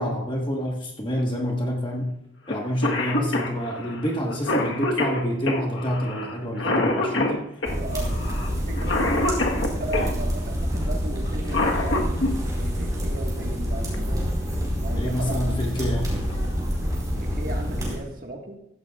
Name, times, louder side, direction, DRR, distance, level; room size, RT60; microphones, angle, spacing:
voice 1, 0.0-2.1 2.5-7.4 8.0-8.2 14.9-16.1, equal, 25° left, 0 dB, 1.5 m, -27 dB
Cough, 2.5-2.6 2.8-10.1 11.3-12.3 13.9-14.0 15.1-15.3 15.8-15.9 16.3-16.8, left 2 dB, 70° left, 1.4 m, -26 dB
sound 1, 7.6-18.0, equal, 20° right, 4.4 m, -27 dB
voice 2, 7.7-14.3 14.8-15.8 17.2-18.6, right 2 dB, 45° right, 1 dB, 1.7 m, -37 dB
16.0 x 14.0 x 2.4 m, 0.82 s
head